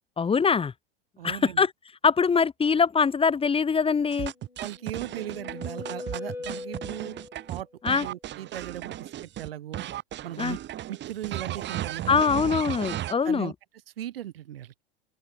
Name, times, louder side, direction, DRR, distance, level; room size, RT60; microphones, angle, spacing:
voice 1, 0.2-0.7 1.2-1.7 2.0-4.3 7.8-8.1 10.4-10.6 12.1-13.5, left 5 dB, 20° left, 2.1 m, -23 dB
voice 2, 1.2-1.7 4.6-7.2 7.5-9.9 10.2-10.6 10.9-12.3 13.2-13.5 14.0-14.7, right 12 dB, 65° right, 5.7 m, -38 dB
sound 1, 4.1-9.5 9.7-13.1, right 13 dB, 35° right, 4.4 m, -35 dB
sound 2, 4.5-7.6, left 3 dB, 85° left, 7.8 m, -40 dB
open air
figure-of-eight pair, 85°, 31 cm